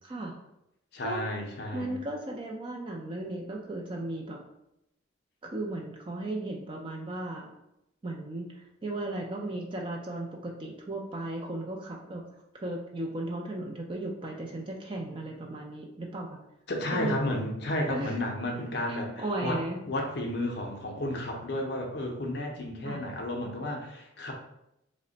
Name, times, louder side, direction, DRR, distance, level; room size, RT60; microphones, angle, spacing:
voice 1, 0.0-0.3 1.0-1.2 1.7-4.4 5.4-7.6 8.0-12.2 12.5-16.4 16.9-17.2 17.9-18.2 18.9-19.8 22.8-23.0, right 2 dB, 25° right, 0 dB, 0.3 m, -36 dB
voice 2, 0.9-2.0 16.7-19.6 19.9-24.3, left 1 dB, 55° left, 1 dB, 0.5 m, -32 dB
3.2 x 2.1 x 3.8 m, 0.83 s
head